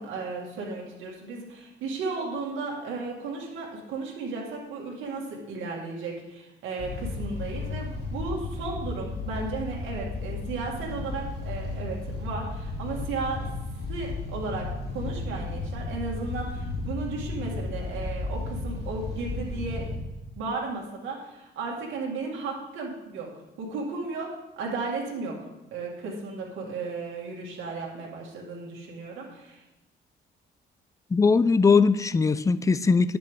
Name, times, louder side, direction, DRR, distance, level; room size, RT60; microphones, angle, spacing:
voice 1, 0.0-13.5 13.9-19.8 20.4-23.3 23.6-25.4 25.7-29.6, right 3 dB, 85° right, -2 dB, 2.1 m, -34 dB
sound 1, 6.8-20.0, left 3 dB, 55° left, 2.7 m, -34 dB
voice 2, 31.1-33.2, left 4 dB, 15° left, 15 dB, 0.4 m, -20 dB
10.5 x 7.7 x 3.7 m, 0.98 s
cardioid pair, 90°, 20 cm